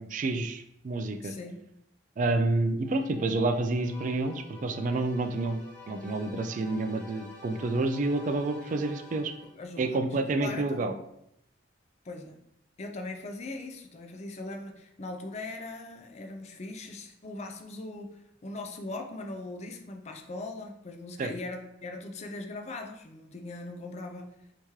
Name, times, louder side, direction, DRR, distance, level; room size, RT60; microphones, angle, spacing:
voice 1, 0.0-1.3 2.2-9.3 9.8-10.9 21.2-21.3, right 2 dB, 40° right, 7 dB, 0.3 m, -29 dB
voice 2, 1.2-1.7 9.6-10.1 10.4-10.8 12.0-12.4 12.8-24.3, left 2 dB, 35° left, 5 dB, 0.4 m, -40 dB
sound 1, 2.8-9.7, left 2 dB, 5° left, 0.9 m, -49 dB
3.0 x 2.8 x 3.5 m, 0.78 s
head